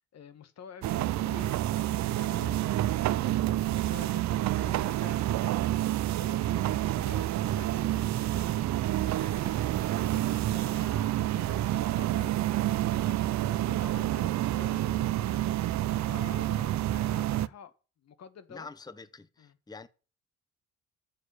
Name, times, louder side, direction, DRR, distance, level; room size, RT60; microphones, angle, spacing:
voice 1, 0.0-18.7 19.4-19.6, left 8 dB, 60° left, 1.4 m, -50 dB
sound 1, 0.8-17.5, right 14 dB, 65° right, 0.6 m, -28 dB
sound 2, 7.7-16.6, left 4 dB, 40° left, 2.8 m, -58 dB
voice 2, 18.5-19.9, left 4 dB, 15° left, 0.8 m, -46 dB
9.5 x 7.0 x 8.4 m
cardioid pair, 90°, 30 cm